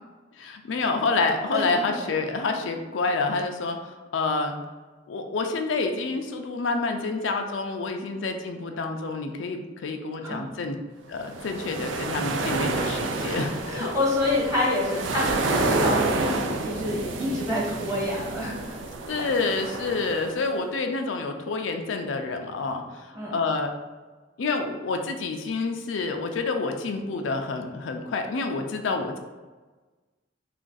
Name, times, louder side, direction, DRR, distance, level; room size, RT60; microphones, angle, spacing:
voice 1, 0.4-4.6 5.1-10.8 11.1-13.5 19.1-23.7 24.4-29.2, left 3 dB, 85° left, 4 dB, 0.4 m, -28 dB
voice 2, 1.5-2.0 10.2-10.4 13.2-18.8 23.1-23.3, left 2 dB, 20° right, -5 dB, 1.1 m, -28 dB
sound 1, 11.2-20.5, right 3 dB, 85° right, 0.4 m, -29 dB
3.3 x 2.5 x 3.8 m, 1.3 s
head